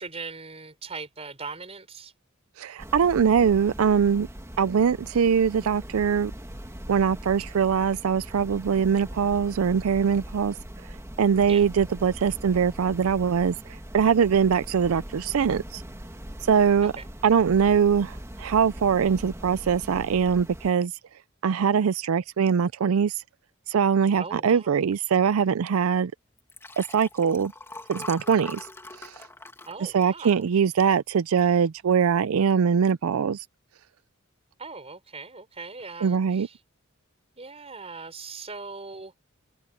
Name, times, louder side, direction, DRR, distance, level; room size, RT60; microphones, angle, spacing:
voice 1, 0.0-2.1 11.5-11.6 16.8-17.1 24.2-24.7 29.7-30.4 34.6-36.6 37.4-39.1, right 4 dB, 30° right, 4.5 m, -40 dB
voice 2, 2.6-4.3 4.6-6.3 6.9-10.5 11.2-15.8 16.4-16.9 17.2-20.9 21.4-23.2 23.7-26.1 26.8-27.5 27.9-28.7 29.0-29.2 29.9-33.5 36.0-36.5, right 7 dB, 85° right, 0.4 m, -22 dB
sound 1, 2.8-20.7, equal, 15° right, 2.1 m, -41 dB
Liquid, 26.4-31.0 31.5-31.8 32.0-32.1, left 2 dB, 10° left, 2.3 m, -43 dB
head